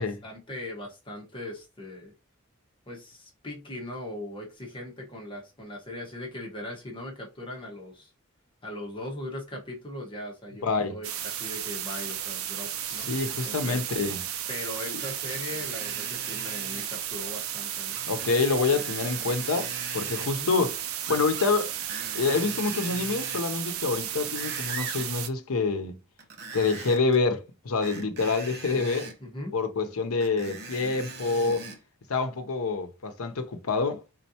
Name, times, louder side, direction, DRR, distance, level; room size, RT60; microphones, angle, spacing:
voice 1, 0.0-2.1 2.9-8.1 8.6-13.1 13.4-13.8 14.5-18.1 20.3-20.5 29.2-29.5, left 1 dB, 25° left, 1.2 m, -39 dB
voice 2, 10.6-11.0 13.0-14.2 14.8-15.0 18.1-20.8 21.1-21.7 22.1-26.0 26.5-29.1 29.5-31.6 32.1-34.0, left 4 dB, 85° left, 0.7 m, -27 dB
sound 1, 11.0-25.3, right 10 dB, 85° right, 0.6 m, -34 dB
Screech, 15.0-16.9 17.9-18.3 18.6-20.3 21.0-21.5 21.8-23.5 24.0-25.1 26.2-27.2 27.8-29.2 30.2-31.8 32.4-32.5, right 3 dB, 50° right, 0.9 m, -41 dB
4.4 x 3.8 x 2.8 m
head